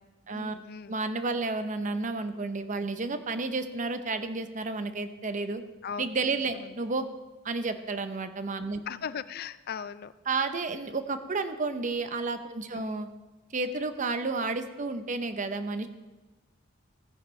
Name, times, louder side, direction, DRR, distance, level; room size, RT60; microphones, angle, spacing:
voice 1, 0.3-1.0 5.8-6.1 6.5-6.8 8.9-10.1 12.7-13.1, left 7 dB, 50° left, 15 dB, 0.4 m, -38 dB
voice 2, 0.9-5.6 6.0-7.1 7.4-8.8 10.3-13.1 13.5-15.9, right 3 dB, 40° right, 9 dB, 0.7 m, -31 dB
15.5 x 9.9 x 3.2 m, 1.2 s
head